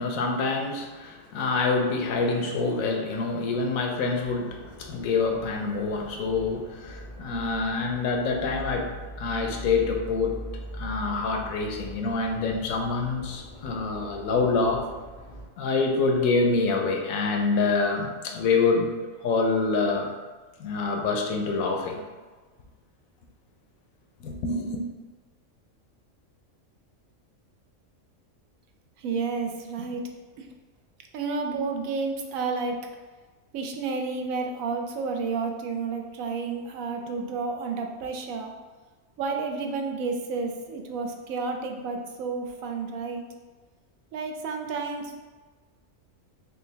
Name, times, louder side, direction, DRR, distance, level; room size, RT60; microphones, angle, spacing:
voice 1, 0.0-10.4 10.7-14.9 15.6-18.9 19.2-20.1 20.6-22.0 24.2-24.8, left 4 dB, 85° left, 3 dB, 1.1 m, -26 dB
sound 1, 4.2-15.5, right 1 dB, 5° left, 1.3 m, -42 dB
voice 2, 29.0-30.0 30.4-30.5 31.1-32.8 33.5-38.5 39.2-43.2 44.1-45.2, right 4 dB, 85° right, 3 dB, 1.0 m, -31 dB
5.1 x 2.3 x 3.2 m, 1.3 s
omnidirectional pair, 1.4 m